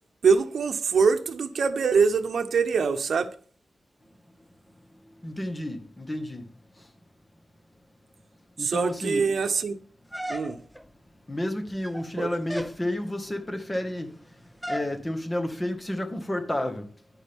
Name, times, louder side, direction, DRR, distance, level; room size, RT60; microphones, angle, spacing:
voice 1, 0.2-3.3 8.6-9.8 10.3-10.6 12.2-12.3, right 5 dB, 80° right, 0.8 m, -23 dB
voice 2, 5.2-6.4 8.6-9.3 11.3-14.1 14.7-16.8, left 1 dB, 20° left, 1.7 m, -30 dB
sound 1, 10.1-10.9 11.7-12.1 12.5-12.8 14.6-15.0, equal, ahead, 0.8 m, -34 dB
10.5 x 9.9 x 3.6 m
wide cardioid pair, 90°, 0 cm